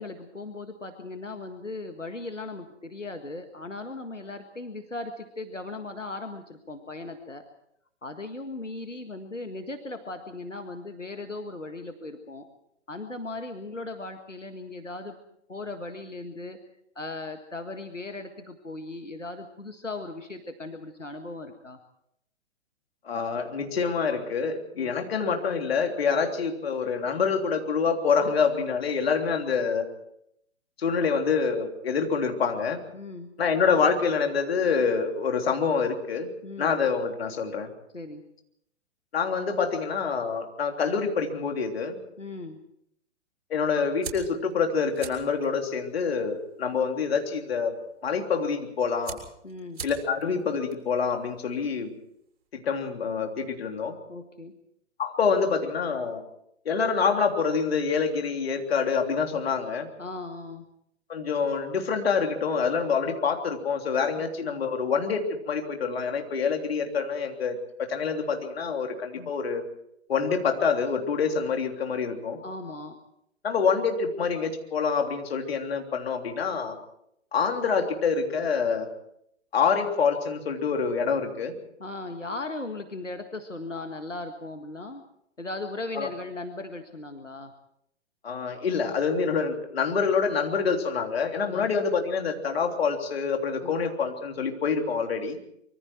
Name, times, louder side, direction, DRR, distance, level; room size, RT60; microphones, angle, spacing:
voice 1, 0.0-7.4 8.0-12.5 12.9-15.2 15.5-16.6 17.0-21.8 24.7-24.9 31.0-31.1 32.9-33.3 36.4-36.8 37.9-38.2 42.2-42.6 49.4-49.8 54.1-54.5 60.0-60.7 64.2-64.3 69.2-69.3 72.4-73.0 81.8-85.0 85.4-87.5 91.5-91.7 93.6-93.8, left 2 dB, 85° left, 6 dB, 1.9 m, -38 dB
voice 2, 23.1-29.8 30.8-32.8 33.4-36.3 36.6-37.7 39.1-42.0 43.5-47.7 48.0-49.2 49.8-51.9 52.5-53.9 55.0-56.2 56.7-59.9 61.1-69.6 70.1-72.4 73.4-76.7 77.3-78.9 79.5-81.5 86.0-86.1 88.2-95.4, left 5 dB, 55° left, 4 dB, 3.5 m, -26 dB
sound 1, 44.0-52.5, right 6 dB, 55° right, 5.9 m, -46 dB
25.0 x 23.5 x 4.6 m, 0.75 s
figure-of-eight pair, 120°, 36 cm